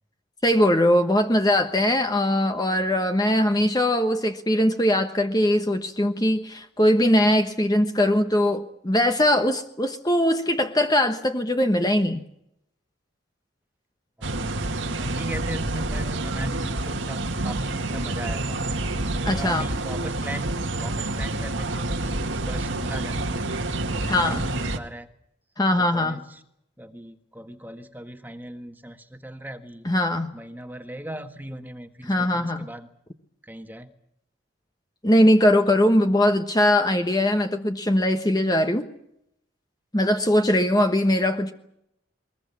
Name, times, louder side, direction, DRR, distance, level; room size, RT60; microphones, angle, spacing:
voice 1, 0.4-12.2 19.3-19.7 24.1-24.5 25.6-26.2 29.8-30.3 32.1-32.7 35.0-38.8 39.9-41.5, left 1 dB, 20° left, 6 dB, 1.2 m, -21 dB
voice 2, 14.2-18.6 19.3-25.1 25.8-26.4 26.8-29.8 30.3-32.9 33.4-33.9, right 1 dB, 10° right, 6 dB, 1.6 m, -39 dB
sound 1, 14.2-24.8, right 2 dB, 75° right, 2.0 m, -28 dB
22.5 x 21.0 x 8.4 m, 0.75 s
head